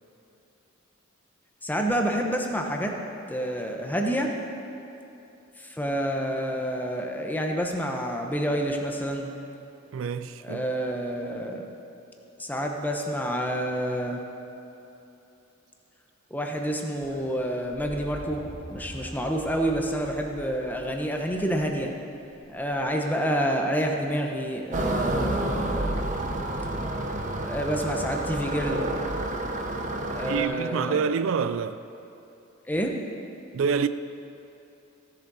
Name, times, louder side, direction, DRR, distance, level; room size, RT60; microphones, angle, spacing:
voice 1, 1.6-2.9 3.3-4.3 5.6-9.3 10.4-11.6 12.4-14.2 16.3-18.4 18.7-21.9 22.5-25.9 27.5-28.8 30.1-31.1 32.7-32.9, equal, 10° left, 0.9 m, -28 dB
voice 2, 9.9-10.7 30.2-31.8 33.5-33.9, right 6 dB, 70° right, 0.3 m, -27 dB
sound 1, 17.0-22.9 24.6-25.1 27.6-27.7, equal, 70° left, 2.8 m, -45 dB
sound 2, 24.7-30.4, right 1 dB, 40° right, 0.8 m, -29 dB
15.5 x 7.3 x 4.1 m
head